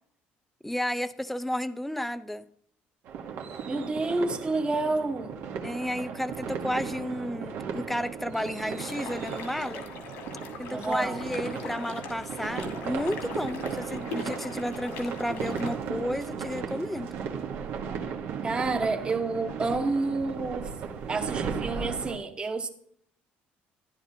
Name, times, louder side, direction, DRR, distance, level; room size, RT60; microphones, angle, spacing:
voice 1, 0.6-2.5 5.6-9.9 10.6-17.1, left 1 dB, 5° left, 0.5 m, -32 dB
sound 1, 3.1-22.2, right 6 dB, 70° right, 1.3 m, -36 dB
voice 2, 3.7-5.4 10.7-11.3 18.4-20.7 21.1-22.7, right 3 dB, 25° right, 1.1 m, -29 dB
sound 2, 8.8-15.8, left 4 dB, 85° left, 2.1 m, -41 dB
12.0 x 10.5 x 2.8 m
cardioid pair, 115°, 4 cm